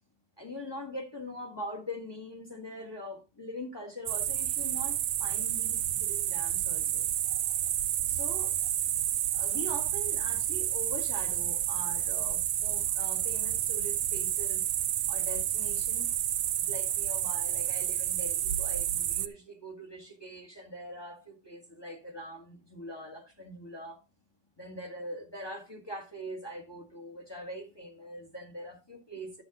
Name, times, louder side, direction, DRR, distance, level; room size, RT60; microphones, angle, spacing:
voice 1, 0.4-7.0 8.1-8.5 9.4-14.7 15.1-16.1 16.5-24.0 24.6-29.4, equal, 15° left, 1.5 m, -42 dB
sound 1, 4.1-19.3, right 11 dB, 85° right, 1.4 m, -30 dB
12.5 x 6.8 x 3.7 m
omnidirectional pair, 1.8 m